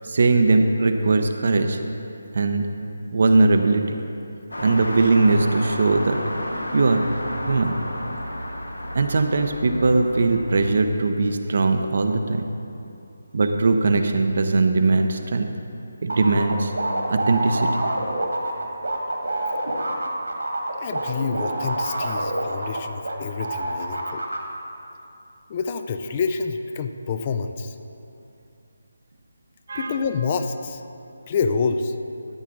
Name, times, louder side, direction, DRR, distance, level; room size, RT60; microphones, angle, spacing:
voice 1, 0.0-1.8 2.3-2.7 3.1-4.0 4.6-6.2 6.7-7.1 7.5-7.8 8.9-12.4 13.3-15.5 16.0-16.7 17.1-17.7 29.7-29.9, right 3 dB, 45° right, 6 dB, 0.7 m, -20 dB
sound 1, 4.5-10.8, left 1 dB, 75° left, 1.2 m, -32 dB
sound 2, 16.1-23.1 23.4-24.4, right 1 dB, 65° right, 1.9 m, -26 dB
voice 2, 20.8-24.3 25.5-27.8 29.8-30.8 31.3-32.0, left 5 dB, 25° left, 8 dB, 0.4 m, -27 dB
14.0 x 8.3 x 3.9 m, 2.7 s
figure-of-eight pair, 150°, 0 cm